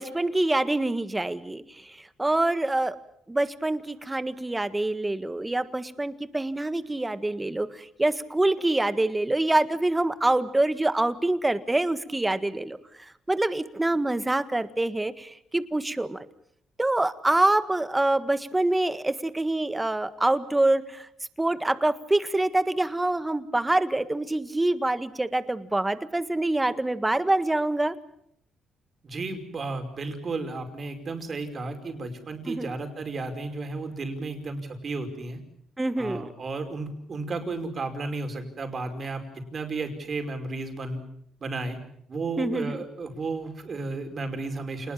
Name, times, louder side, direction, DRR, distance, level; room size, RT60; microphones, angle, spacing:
voice 1, 0.0-1.6 2.2-2.9 3.3-7.7 8.0-12.8 13.3-16.3 16.8-21.1 21.4-27.9 32.4-32.7 35.8-36.3 42.4-42.8, right 2 dB, 15° right, 12 dB, 1.7 m, -25 dB
voice 2, 29.0-35.4 36.0-41.0 41.4-41.8 42.1-44.9, right 3 dB, 45° right, 6 dB, 5.3 m, -33 dB
28.0 x 20.5 x 7.5 m, 0.69 s
cardioid pair, 90°, 0 cm